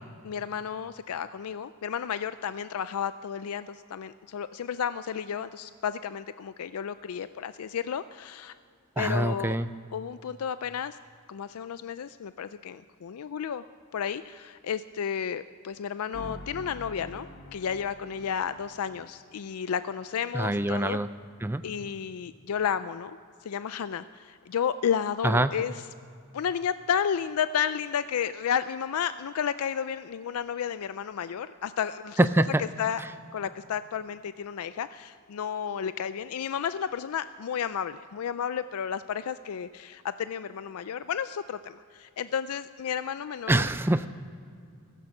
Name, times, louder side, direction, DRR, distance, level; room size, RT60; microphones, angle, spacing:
voice 1, 0.2-8.5 9.0-9.6 9.9-11.0 11.3-13.6 13.9-21.0 21.6-25.7 26.3-32.3 32.6-33.0 33.3-43.6, left 8 dB, 80° left, 13 dB, 0.4 m, -32 dB
voice 2, 9.0-9.7 20.3-21.1 21.4-21.6 25.2-25.5 32.2-32.6 33.0-33.1 43.5-44.1, right 1 dB, 10° right, 12 dB, 0.4 m, -25 dB
sound 1, 16.1-20.2, left 1 dB, 50° left, 1.3 m, -47 dB
15.5 x 15.0 x 6.0 m, 2.3 s
head